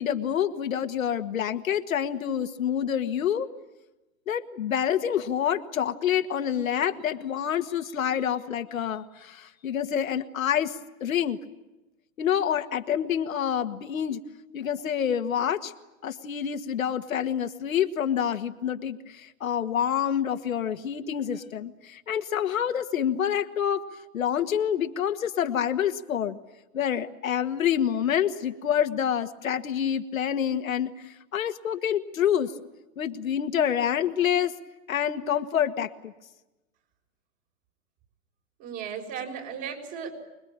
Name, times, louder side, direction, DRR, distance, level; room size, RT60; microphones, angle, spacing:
voice 1, 0.0-3.5 4.3-11.4 12.2-14.2 14.5-15.7 16.0-23.8 24.1-26.4 26.7-32.5 33.0-34.5 34.9-36.1, left 9 dB, 75° left, 7 dB, 1.8 m, -27 dB
voice 2, 38.6-40.1, right 7 dB, 40° right, 3 dB, 6.7 m, -35 dB
25.5 x 22.0 x 8.9 m, 1.0 s
hypercardioid pair, 125°, 41 cm